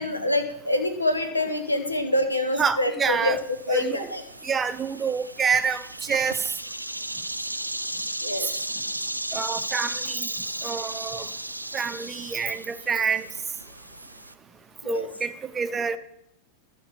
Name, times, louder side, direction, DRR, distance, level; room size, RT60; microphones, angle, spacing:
voice 1, 0.0-3.4 3.7-4.2 8.2-8.5 14.8-15.1, left 1 dB, 85° left, 8 dB, 0.9 m, -26 dB
voice 2, 2.6-3.4 3.7-4.1 4.4-6.4 9.3-10.3 10.6-11.3 11.7-13.3 14.9-16.0, right 6 dB, 20° right, 11 dB, 0.6 m, -27 dB
sound 1, 3.4-14.3, right 1 dB, 85° right, 0.4 m, -35 dB
14.5 x 5.3 x 4.0 m, 0.79 s
figure-of-eight pair, 90°, 0 cm